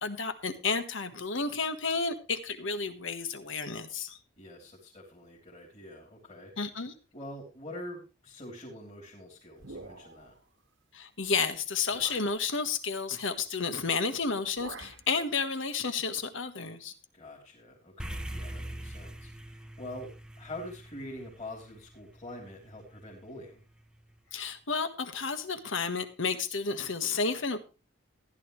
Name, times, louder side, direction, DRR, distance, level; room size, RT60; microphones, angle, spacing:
voice 1, 0.0-4.2 6.6-6.9 10.9-16.9 24.3-27.6, left 5 dB, 75° left, 10 dB, 1.5 m, -31 dB
voice 2, 4.4-6.5 7.1-10.4 17.1-23.6, left 1 dB, 35° left, -2 dB, 3.2 m, -45 dB
sound 1, 9.6-10.4 11.3-11.4 11.9-12.4 13.8-14.0 14.3-15.1, right 3 dB, 75° right, 1.7 m, -46 dB
sound 2, 18.0-22.5, right 1 dB, 5° right, 0.7 m, -42 dB
15.0 x 11.0 x 3.2 m, 0.31 s
head